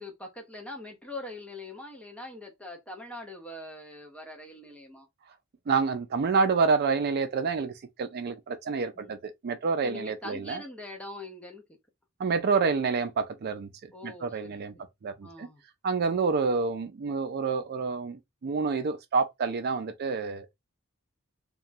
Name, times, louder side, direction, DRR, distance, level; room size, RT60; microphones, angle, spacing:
voice 1, 0.0-5.1 8.9-9.2 9.8-11.8 13.9-14.8 15.2-15.6, left 2 dB, 5° left, 0.5 m, -43 dB
voice 2, 5.7-7.7 8.0-10.6 12.2-14.7 15.0-15.5 15.8-20.5, right 4 dB, 50° right, 0.4 m, -28 dB
2.9 x 2.2 x 2.5 m
head